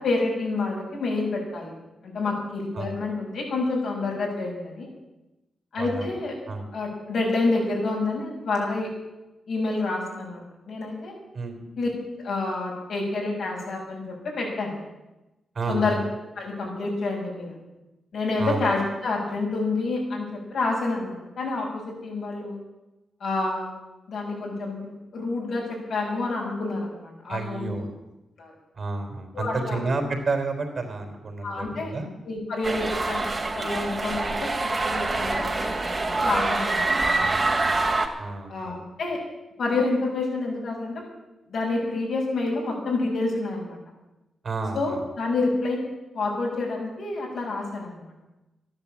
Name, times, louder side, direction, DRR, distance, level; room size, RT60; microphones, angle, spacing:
voice 1, 0.0-1.7 2.0-4.9 5.7-6.3 6.7-8.9 9.5-11.1 11.8-11.9 12.2-14.7 15.7-16.0 16.3-17.5 18.1-22.6 23.2-23.7 24.1-27.7 28.4-28.5 29.3-29.8 31.4-31.9 32.2-37.4 38.5-39.2 39.6-41.0 41.5-43.8 44.7-45.8 46.1-48.3, left 3 dB, 75° left, -3 dB, 6.9 m, -28 dB
voice 2, 5.8-6.1 6.5-6.7 11.3-11.6 15.5-16.0 18.4-18.6 27.3-28.0 28.7-32.1 37.2-37.9 38.2-38.9 44.4-45.0, right 3 dB, 55° right, 5 dB, 3.9 m, -31 dB
sound 1, 32.6-38.1, right 2 dB, 35° right, 2.5 m, -25 dB
13.0 x 10.5 x 8.7 m, 1.0 s
cardioid pair, 60°, 0 cm